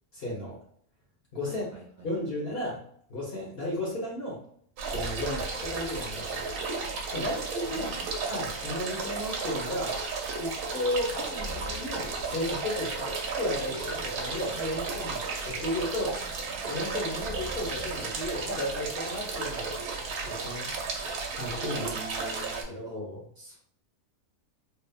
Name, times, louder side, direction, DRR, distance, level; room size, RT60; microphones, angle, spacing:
voice 1, 0.1-0.6 1.3-1.6 2.0-2.8 3.1-4.4 4.9-6.4 7.1-8.0 8.3-10.0 10.4-16.2 16.7-19.8 20.2-20.7 21.3-21.9 22.7-23.2, left 1 dB, 50° left, -5 dB, 0.9 m, -34 dB
voice 2, 1.4-2.3 7.3-8.4 21.7-23.0 23.4-23.6, right 2 dB, 55° right, -3 dB, 1.0 m, -46 dB
sound 1, 4.8-22.6, right 4 dB, 85° right, 1.2 m, -34 dB
sound 2, 4.9-6.9 7.2-7.3 11.3-13.3 17.2-19.1, left 2 dB, 5° left, 0.7 m, -44 dB
3.3 x 2.0 x 2.2 m, 0.63 s
omnidirectional pair, 1.6 m